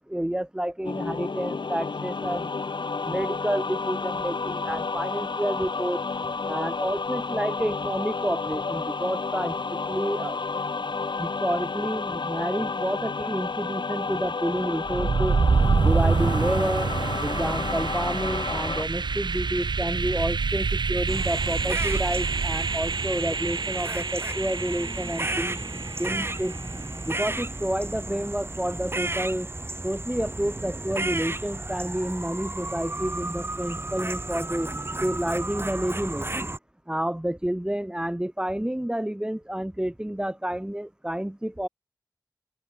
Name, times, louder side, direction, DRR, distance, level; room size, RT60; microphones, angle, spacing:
voice 1, 0.1-2.5 3.0-6.0 6.5-10.3 11.2-15.4 15.8-16.9 17.2-25.6 26.0-26.6 27.0-29.5 29.8-34.7 35.0-36.5 36.9-41.7, right 1 dB, 10° right, 2.1 m, -29 dB
sound 1, 0.8-18.8, left 4 dB, 90° left, 2.0 m, -31 dB
sound 2, 14.8-26.7, right 4 dB, 75° right, 0.6 m, -27 dB
sound 3, 21.1-36.6, right 2 dB, 30° right, 0.9 m, -33 dB
wide cardioid pair, 60°, 8 cm